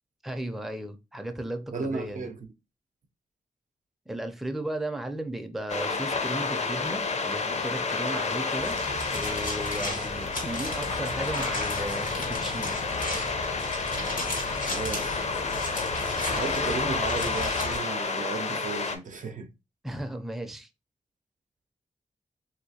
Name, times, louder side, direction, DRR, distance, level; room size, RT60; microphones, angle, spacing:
voice 1, 0.2-2.3 4.1-8.8 9.1-12.8 19.8-20.7, right 1 dB, ahead, 0.5 m, -35 dB
voice 2, 1.7-2.4 14.7-15.1 16.2-19.5, right 4 dB, 65° right, 0.5 m, -34 dB
sound 1, 5.7-19.0, left 4 dB, 55° left, 0.6 m, -30 dB
sound 2, 8.6-17.8, left 1 dB, 85° left, 1.5 m, -35 dB
3.0 x 2.8 x 2.7 m
cardioid pair, 60°, 14 cm